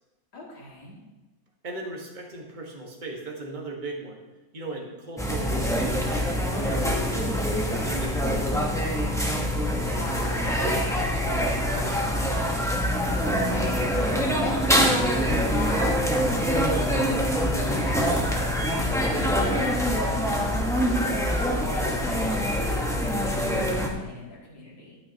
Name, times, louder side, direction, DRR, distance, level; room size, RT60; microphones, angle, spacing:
voice 1, 0.3-1.0 9.8-12.6 12.9-21.4 21.7-25.0, left 1 dB, 85° left, -4 dB, 3.3 m, -40 dB
voice 2, 1.6-4.2 4.5-8.6 16.7-17.0, right 2 dB, 25° right, 0 dB, 1.3 m, -38 dB
sound 1, 5.2-23.9, equal, 5° left, 0.4 m, -25 dB
12.5 x 8.8 x 2.8 m, 1.1 s
omnidirectional pair, 2.1 m